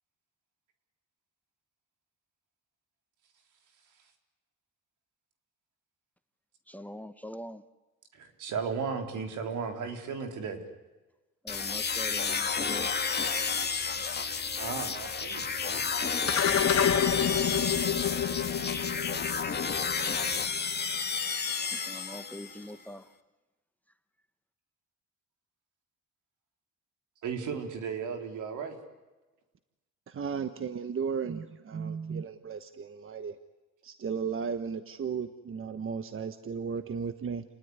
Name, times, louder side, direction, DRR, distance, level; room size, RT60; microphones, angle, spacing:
voice 1, 6.7-7.6 11.4-12.9 21.9-23.0, left 1 dB, 5° left, 1.2 m, -43 dB
voice 2, 8.1-10.6 14.6-15.9 27.2-28.8, right 5 dB, 80° right, 4.0 m, -35 dB
sound 1, 11.5-22.6, left 5 dB, 35° left, 2.3 m, -31 dB
sound 2, 16.3-20.9, left 8 dB, 50° left, 2.7 m, -29 dB
voice 3, 30.1-33.4 33.8-37.4, right 6 dB, 45° right, 1.3 m, -35 dB
29.0 x 19.5 x 9.7 m
cardioid pair, 90°, 30 cm